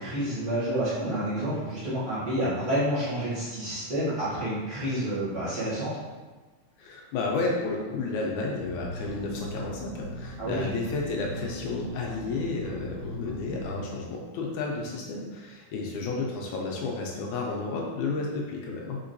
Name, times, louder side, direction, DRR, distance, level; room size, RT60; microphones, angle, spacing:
voice 1, 0.0-5.9 10.4-10.7, right 1 dB, 45° right, -13 dB, 0.6 m, -29 dB
voice 2, 6.8-19.0, left 3 dB, 80° left, -1 dB, 1.9 m, -32 dB
sound 1, 8.5-13.8, right 1 dB, 65° left, 1.6 m, -39 dB
5.0 x 3.8 x 2.6 m, 1.3 s
omnidirectional pair, 3.6 m